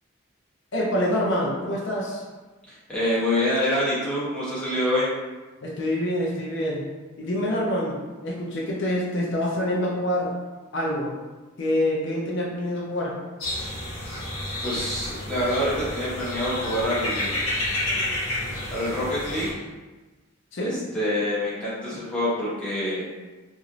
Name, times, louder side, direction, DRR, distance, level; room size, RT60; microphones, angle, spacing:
voice 1, 0.7-2.2 5.6-6.9 7.2-8.0 8.2-10.4 10.7-11.1 11.6-13.2 20.5-20.8, left 1 dB, 60° left, -4 dB, 0.5 m, -26 dB
voice 2, 2.7-5.1 14.0-14.2 14.6-17.4 18.7-19.7 20.6-23.1, left 1 dB, 5° left, -10 dB, 0.8 m, -26 dB
sound 1, 13.4-19.5, left 1 dB, 80° left, 0.9 m, -30 dB
3.0 x 2.5 x 2.5 m, 1.2 s
head